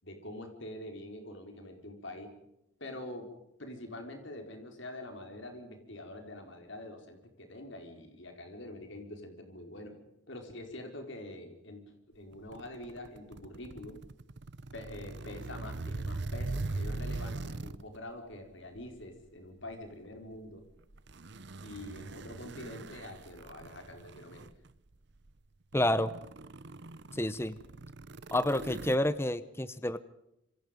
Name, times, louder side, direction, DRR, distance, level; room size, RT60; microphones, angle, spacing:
voice 1, 0.0-2.3 2.8-3.3 3.6-9.9 10.3-14.0 14.7-20.6 21.6-24.5, left 1 dB, 60° left, 5 dB, 4.8 m, -45 dB
sound 1, 12.3-18.0 18.8-19.0 20.9-24.7 25.3-25.4 25.7-29.0, right 2 dB, 55° right, 0.8 m, -41 dB
voice 2, 25.7-26.1 27.1-27.5 28.3-30.0, left 1 dB, 10° left, 14 dB, 0.8 m, -29 dB
27.5 x 26.0 x 5.3 m, 0.85 s
head